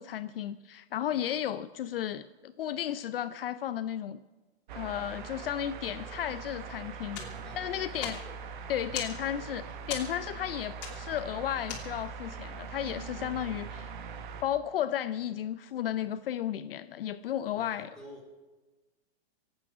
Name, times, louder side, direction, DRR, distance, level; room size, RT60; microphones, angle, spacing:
voice 1, 0.0-4.2 4.7-7.2 7.5-8.2 8.7-13.9 14.4-17.9, left 11 dB, 60° left, 13 dB, 0.6 m, -34 dB
sound 1, 4.7-14.4, right 5 dB, 45° right, 1.1 m, -42 dB
sound 2, 7.1-12.3, left 7 dB, 40° left, 3.0 m, -42 dB
voice 2, 7.2-8.4 17.5-18.4, equal, ahead, -5 dB, 2.8 m, -49 dB
24.5 x 8.8 x 6.1 m, 1.2 s
supercardioid pair, 175°, 33 cm